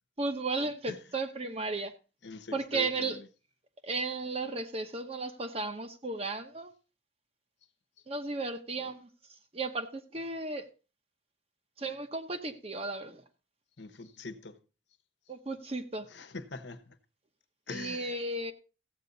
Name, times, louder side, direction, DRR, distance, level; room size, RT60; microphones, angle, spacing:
voice 1, 0.2-1.9 2.5-3.2 3.8-6.7 8.1-9.1 9.5-10.7 11.8-13.2 15.3-16.1 17.7-18.5, right 3 dB, 35° right, 1.0 m, -34 dB
voice 2, 2.2-3.3 13.8-14.6 16.1-17.0 17.7-18.2, left 3 dB, 80° left, 1.1 m, -43 dB
15.0 x 8.2 x 4.0 m
head